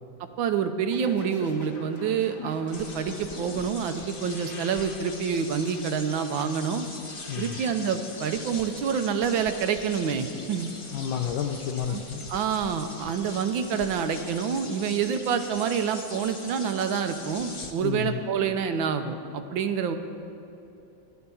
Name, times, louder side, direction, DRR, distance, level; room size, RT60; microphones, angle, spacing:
voice 1, 0.4-6.8 7.4-10.7 11.9-12.0 12.3-20.0, right 7 dB, 85° right, 8 dB, 1.5 m, -27 dB
sound 1, 0.9-9.6, left 2 dB, 50° left, 2.8 m, -46 dB
sound 2, 2.7-17.7, left 2 dB, 25° left, 0.6 m, -42 dB
voice 2, 7.3-7.6 10.9-12.3 17.8-18.2, left 8 dB, 80° left, 3 dB, 1.5 m, -30 dB
13.5 x 10.5 x 7.0 m, 2.8 s
omnidirectional pair, 2.1 m